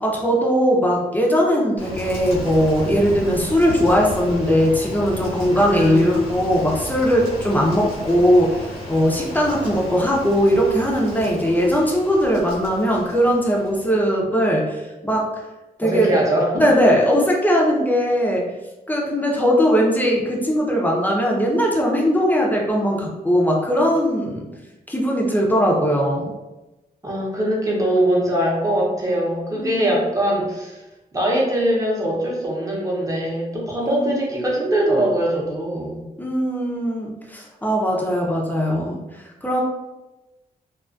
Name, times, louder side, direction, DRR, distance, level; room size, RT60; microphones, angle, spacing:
voice 1, 0.0-15.3 15.8-16.2 16.6-18.5 18.9-24.5 24.9-26.3 29.5-30.0 33.8-34.1 36.2-39.6, equal, 10° left, -2 dB, 0.5 m, -19 dB
Rain, 1.8-14.2, left 1 dB, 80° left, 1.0 m, -34 dB
voice 2, 5.5-6.2 15.8-16.6 27.0-30.8 31.1-36.0, right 1 dB, 20° right, -4 dB, 0.8 m, -22 dB
2.3 x 2.3 x 2.4 m, 1.0 s
cardioid pair, 80°, 16 cm